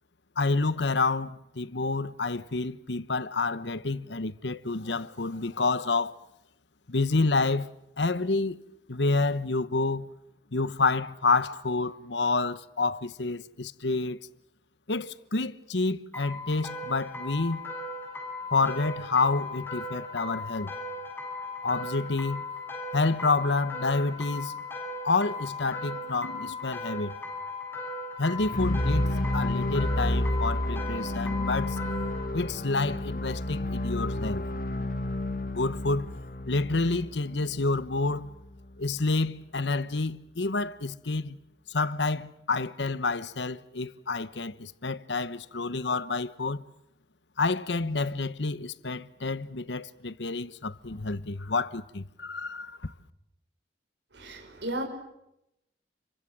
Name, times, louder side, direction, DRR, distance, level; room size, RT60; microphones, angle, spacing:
voice 1, 0.4-6.2 6.9-8.6 8.9-10.1 10.5-14.3 14.9-17.7 18.5-20.7 21.6-22.5 22.9-24.6 25.0-27.1 28.2-31.8 32.3-34.4 35.5-36.2 36.5-38.3 38.8-41.4 41.7-46.6 47.4-52.9, left 3 dB, 85° left, 1.1 m, -29 dB
sound 1, 16.1-32.3, left 2 dB, 15° left, 7.2 m, -37 dB
sound 2, 28.4-38.4, left 1 dB, 50° left, 1.7 m, -30 dB
voice 2, 54.1-54.8, right 1 dB, 80° right, 5.7 m, -34 dB
30.0 x 24.0 x 7.6 m
head